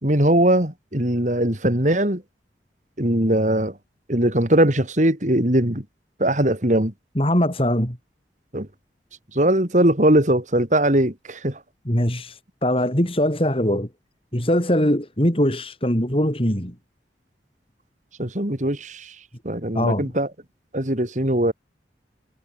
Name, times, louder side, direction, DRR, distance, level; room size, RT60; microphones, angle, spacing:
voice 1, 0.0-2.2 3.0-3.7 4.1-5.8 6.2-6.9 8.5-8.7 9.3-11.6 18.2-19.1 19.4-20.3 20.7-21.5, right 1 dB, 45° right, 3.3 m, -20 dB
voice 2, 7.2-8.0 11.9-13.9 14.3-16.7 19.7-20.1, equal, 30° left, 5.6 m, -21 dB
head